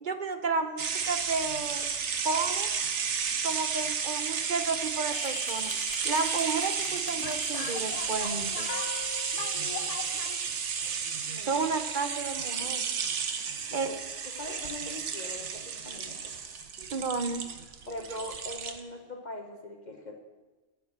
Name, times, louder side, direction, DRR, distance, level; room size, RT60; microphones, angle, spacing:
voice 1, 0.0-1.8 2.2-2.7 3.4-5.7 6.0-8.7 11.4-12.8 13.7-13.9 16.8-17.5, right 4 dB, 45° right, 8 dB, 0.8 m, -32 dB
sound 1, 0.8-18.8, right 6 dB, 75° right, 1.2 m, -33 dB
sound 2, 5.1-10.4, left 7 dB, 85° left, 1.1 m, -41 dB
sound 3, 8.7-11.2, left 6 dB, 60° left, 1.1 m, -44 dB
voice 2, 11.3-11.7 13.7-14.0 14.3-16.3 17.9-20.2, left 1 dB, 40° left, 3 dB, 1.0 m, -41 dB
10.0 x 7.3 x 8.5 m, 1.2 s
omnidirectional pair, 1.2 m